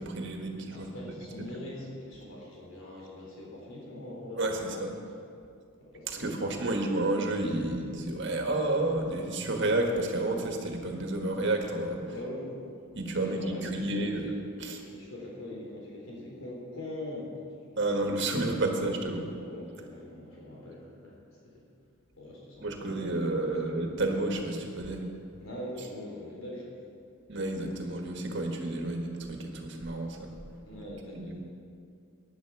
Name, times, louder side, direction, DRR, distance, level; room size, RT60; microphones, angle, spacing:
voice 1, 0.0-0.9 1.4-1.5 4.4-4.9 6.1-12.0 13.0-14.3 14.6-14.7 17.8-19.3 22.6-25.1 27.3-30.3 31.2-31.3, right 2 dB, 60° right, 2 dB, 1.6 m, -30 dB
voice 2, 0.7-5.1 5.8-6.7 12.1-12.8 13.1-14.4 14.9-17.6 19.3-21.2 21.4-21.7 22.2-23.6 25.4-26.8 30.6-31.4, left 1 dB, 80° left, -3 dB, 3.7 m, -42 dB
15.5 x 10.0 x 4.8 m, 2.3 s
head